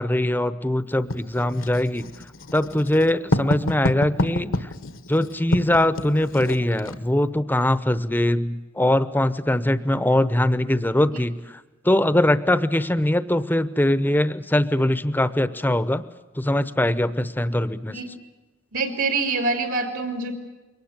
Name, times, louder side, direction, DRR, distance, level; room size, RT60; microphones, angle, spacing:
voice 1, 0.0-2.0 2.5-4.7 5.1-16.0 16.4-18.0, left 1 dB, 10° left, 14 dB, 0.8 m, -22 dB
Writing, 1.1-7.0, left 1 dB, 70° left, 1.3 m, -28 dB
voice 2, 18.7-20.3, right 3 dB, 75° right, 5 dB, 3.1 m, -25 dB
23.0 x 19.0 x 8.0 m, 1.1 s
head